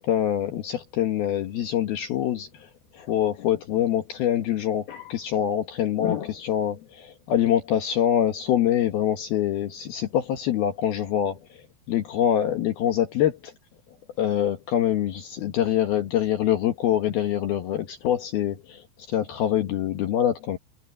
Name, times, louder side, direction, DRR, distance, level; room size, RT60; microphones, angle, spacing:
voice 1, 0.0-2.7 2.9-11.4 11.9-13.5 14.2-20.6, left 10 dB, 65° left, 2.7 m, -25 dB
omnidirectional pair, 5.7 m